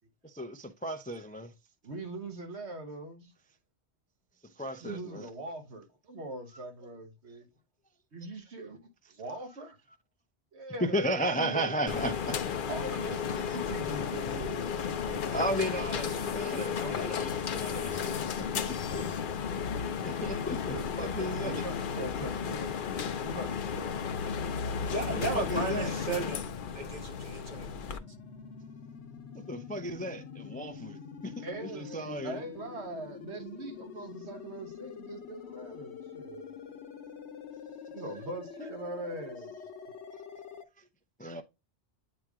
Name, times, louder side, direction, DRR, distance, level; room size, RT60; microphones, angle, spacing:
voice 1, 0.2-1.5 4.6-5.3 10.8-12.4 15.3-19.0 20.0-21.5 25.1-26.0 29.3-32.4 40.8-40.9 41.2-41.4, equal, 10° left, 0.4 m, -35 dB
voice 2, 1.8-3.3 4.8-7.5 8.1-8.8 9.2-9.8 10.5-11.8 12.7-17.2 20.7-22.8 23.2-24.4 31.4-36.6 37.9-39.6, right 2 dB, 75° right, 1.5 m, -42 dB
sound 1, 11.9-28.0, left 6 dB, 55° left, 0.7 m, -33 dB
voice 3, 24.9-28.0, right 3 dB, 40° right, 1.4 m, -35 dB
sound 2, 25.7-40.6, left 6 dB, 90° left, 1.1 m, -46 dB
8.8 x 3.0 x 3.6 m
omnidirectional pair, 1.1 m